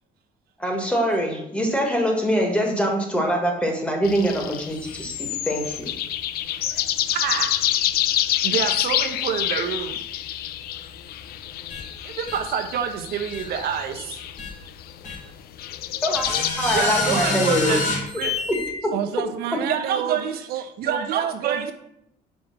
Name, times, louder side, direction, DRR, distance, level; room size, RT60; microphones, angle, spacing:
voice 1, 0.6-5.9 16.0-17.8, equal, 5° left, 1 dB, 1.7 m, -24 dB
sound 1, 4.0-16.5, left 12 dB, 70° left, 0.5 m, -27 dB
voice 2, 6.6-7.6 8.4-10.0 12.0-14.3 16.7-17.8 18.1-18.3 19.7-21.7, right 7 dB, 65° right, 6 dB, 1.0 m, -27 dB
sound 2, 11.7-11.8 12.3-12.4 13.3-13.4 14.4-14.5 15.0-15.2 16.1-18.7, left 3 dB, 45° left, 1.9 m, -26 dB
voice 3, 18.9-21.7, right 10 dB, 90° right, 10 dB, 0.6 m, -29 dB
5.4 x 5.2 x 6.0 m, 0.79 s
cardioid pair, 125°, 17 cm